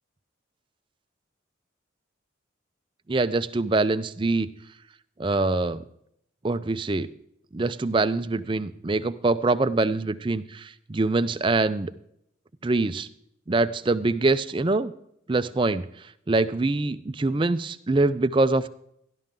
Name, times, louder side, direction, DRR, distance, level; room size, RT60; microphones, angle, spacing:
voice 1, 3.1-4.5 5.2-5.8 6.4-7.1 7.5-11.9 12.6-13.1 13.5-14.9 15.3-15.9 16.3-18.7, right 3 dB, 25° right, 12 dB, 0.4 m, -24 dB
13.5 x 11.5 x 3.7 m, 0.72 s
head